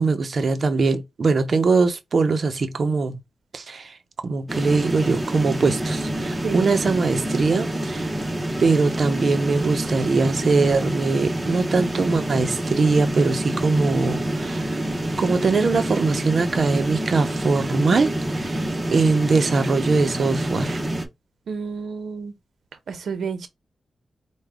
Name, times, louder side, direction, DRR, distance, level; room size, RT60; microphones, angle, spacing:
voice 1, 0.0-3.2 3.5-4.0 4.2-8.1 8.6-14.8 15.2-20.8, right 4 dB, 60° right, 0.7 m, -22 dB
sound 1, 4.5-21.1, right 1 dB, 15° right, 0.9 m, -27 dB
voice 2, 21.5-22.3 22.9-23.5, right 5 dB, 85° right, 0.8 m, -30 dB
4.8 x 2.3 x 3.4 m
cardioid pair, 75°, 0 cm